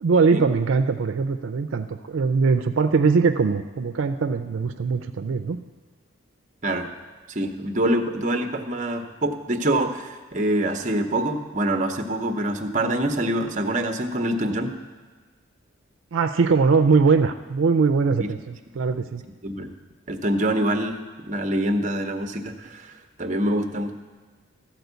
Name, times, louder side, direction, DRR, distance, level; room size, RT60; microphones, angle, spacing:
voice 1, 0.0-5.6 16.1-19.2, right 4 dB, 75° right, 8 dB, 0.4 m, -21 dB
voice 2, 7.3-14.7 18.2-18.3 19.4-19.7 20.1-22.9 23.2-23.9, right 1 dB, 35° right, 6 dB, 0.7 m, -25 dB
13.0 x 4.4 x 8.0 m, 1.4 s
head